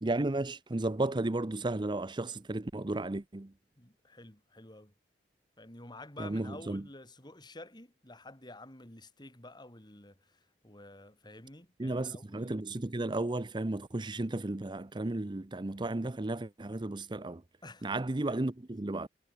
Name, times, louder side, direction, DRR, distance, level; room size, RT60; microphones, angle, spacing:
voice 1, 0.0-3.5 6.2-6.8 11.8-17.4 17.8-19.1, right 2 dB, 25° right, 0.7 m, -34 dB
voice 2, 3.8-4.9 5.6-12.6 17.6-17.9 18.2-18.4, left 2 dB, 25° left, 5.7 m, -50 dB
head